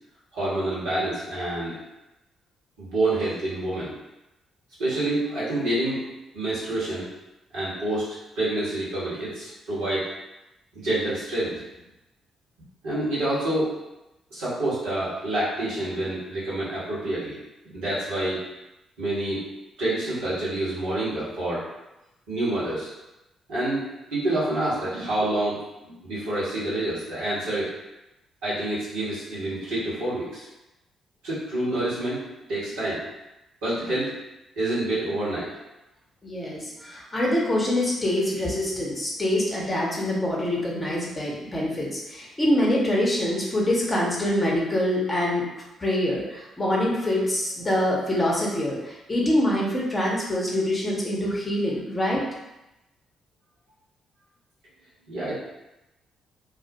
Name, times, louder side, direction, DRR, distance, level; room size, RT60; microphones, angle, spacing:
voice 1, 0.3-1.8 2.8-3.9 4.8-6.1 6.3-7.1 7.5-8.1 8.4-10.1 10.7-11.6 12.8-13.7 14.3-17.4 17.6-18.4 19.0-19.4 19.8-21.7 22.3-22.9 23.5-23.8 24.1-27.7 28.4-30.4 31.2-32.2 32.5-33.0 33.6-34.1 34.6-35.5 55.1-55.4, right 1 dB, 70° right, -9 dB, 1.0 m, -27 dB
voice 2, 36.2-45.5 45.8-52.2, left 1 dB, 25° left, -4 dB, 0.8 m, -25 dB
2.4 x 2.1 x 2.7 m, 0.94 s
figure-of-eight pair, 40°, 0 cm